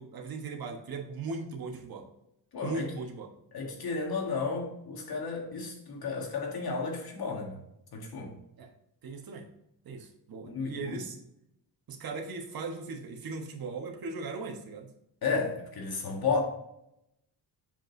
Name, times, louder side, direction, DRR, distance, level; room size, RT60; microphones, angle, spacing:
voice 1, 0.0-2.1 2.6-3.3 8.6-8.7 9.0-9.5 9.8-11.2 11.9-14.9, right 3 dB, 55° right, 1.3 m, -38 dB
voice 2, 2.5-2.9 3.5-7.6 7.9-8.3 10.4-11.0 15.2-16.4, left 4 dB, 60° left, 1.8 m, -32 dB
7.2 x 5.2 x 2.7 m
wide cardioid pair, 150°, 42 cm